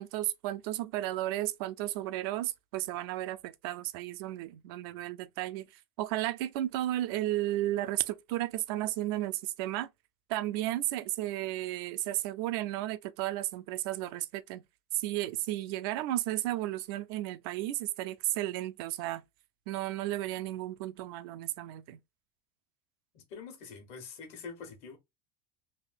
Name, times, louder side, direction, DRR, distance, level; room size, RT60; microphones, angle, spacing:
voice 1, 0.0-5.7 6.0-9.9 10.3-14.6 14.9-19.2 19.7-22.0, right 15 dB, 65° right, 0.4 m, -33 dB
voice 2, 23.1-25.0, left 5 dB, 55° left, 1.3 m, -45 dB
3.4 x 2.7 x 2.3 m
supercardioid pair, 140°, 13 cm